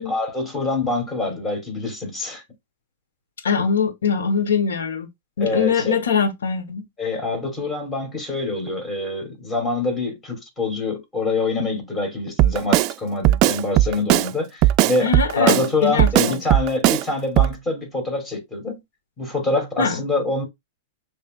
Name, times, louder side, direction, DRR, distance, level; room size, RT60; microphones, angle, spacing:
voice 1, 0.0-2.4 5.4-6.0 7.0-15.1 15.4-18.8 19.2-20.4, left 3 dB, 15° left, 2.6 m, -25 dB
voice 2, 3.4-5.1 5.4-6.8 15.0-16.4 19.8-20.0, left 6 dB, 90° left, 1.1 m, -22 dB
Drum kit, 12.4-12.9 13.2-14.3 14.6-15.7 16.0-17.0 17.4-17.5, right 15 dB, 45° right, 0.3 m, -17 dB
6.6 x 3.3 x 2.4 m
hypercardioid pair, 125°, 0 cm